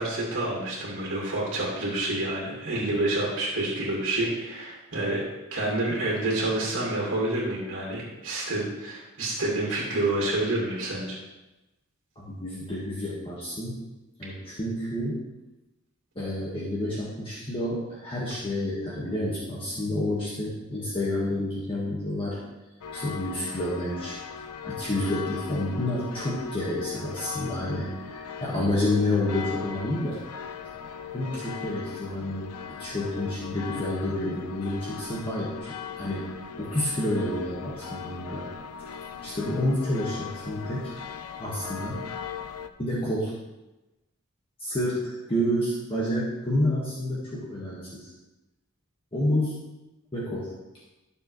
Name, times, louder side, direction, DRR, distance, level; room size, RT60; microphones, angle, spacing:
voice 1, 0.0-5.2 5.5-11.2, right 2 dB, 55° right, -5 dB, 2.3 m, -28 dB
voice 2, 12.1-13.8 14.2-15.2 16.1-22.4 22.9-24.2 24.6-30.2 31.1-36.3 36.6-38.5 39.2-40.9 41.4-42.0 42.8-43.3 44.6-48.1 49.1-49.6 50.1-50.5, left 1 dB, 25° left, -6 dB, 1.6 m, -29 dB
sound 1, 22.8-42.7, left 7 dB, 85° left, 0.5 m, -39 dB
12.5 x 6.9 x 3.2 m, 1.0 s
head